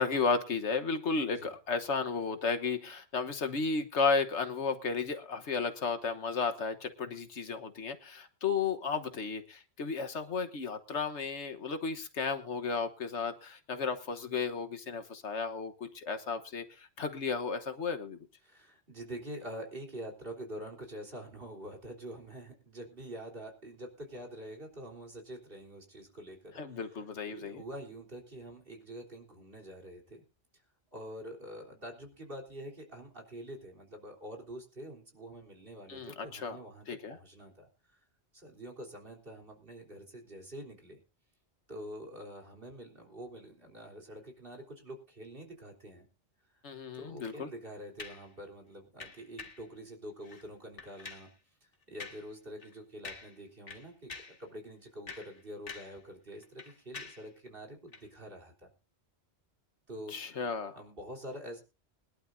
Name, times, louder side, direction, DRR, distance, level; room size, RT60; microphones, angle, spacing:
voice 1, 0.0-18.2 26.6-27.6 35.9-36.6 36.9-37.2 46.6-47.5 60.1-60.8, left 5 dB, 75° left, 8 dB, 1.5 m, -33 dB
voice 2, 1.2-1.5 18.4-30.2 30.9-38.0 38.3-41.0 41.7-46.1 46.9-51.3 51.6-58.7 59.9-61.6, equal, 50° right, 2 dB, 3.8 m, -46 dB
sound 1, 48.0-48.3 49.0-49.7 50.2-50.5 50.8-51.3 52.0-52.3 52.6-52.7 53.0-53.4 53.7-54.4 54.9-56.0 56.3-57.3 57.9-58.1, left 4 dB, 55° left, 2.0 m, -46 dB
22.0 x 11.5 x 2.6 m, 0.31 s
omnidirectional pair, 1.2 m